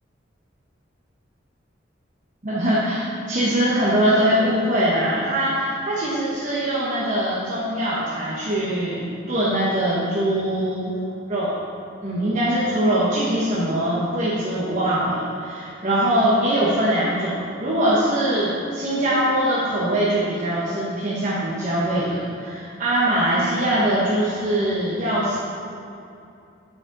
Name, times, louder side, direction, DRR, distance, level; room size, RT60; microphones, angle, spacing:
voice 1, 2.4-11.0 11.3-11.5 12.0-25.4, right 1 dB, 40° right, -8 dB, 1.1 m, -22 dB
9.3 x 5.0 x 4.0 m, 2.6 s
head